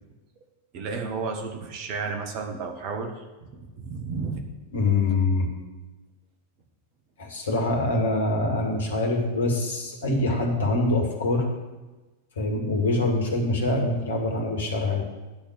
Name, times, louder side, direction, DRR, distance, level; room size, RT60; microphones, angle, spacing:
voice 1, 0.7-4.4, right 4 dB, 45° right, 4 dB, 1.5 m, -32 dB
voice 2, 4.7-5.5 7.2-11.5 12.4-15.0, left 2 dB, 65° left, 2 dB, 2.0 m, -24 dB
10.5 x 4.4 x 7.8 m, 1.1 s
figure-of-eight pair, 90°, 0 cm